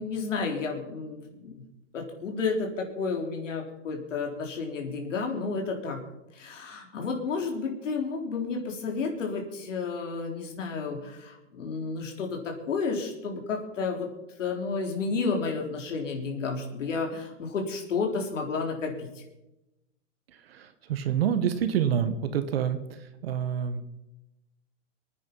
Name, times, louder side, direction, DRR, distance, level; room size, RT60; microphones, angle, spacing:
voice 1, 0.0-1.6 1.9-6.0 6.3-14.1 14.4-19.2, left 4 dB, 75° left, 1 dB, 3.9 m, -31 dB
voice 2, 20.5-22.8 23.2-23.9, right 8 dB, 50° right, 10 dB, 1.5 m, -27 dB
25.0 x 9.6 x 5.5 m, 0.95 s
hypercardioid pair, 160°, 37 cm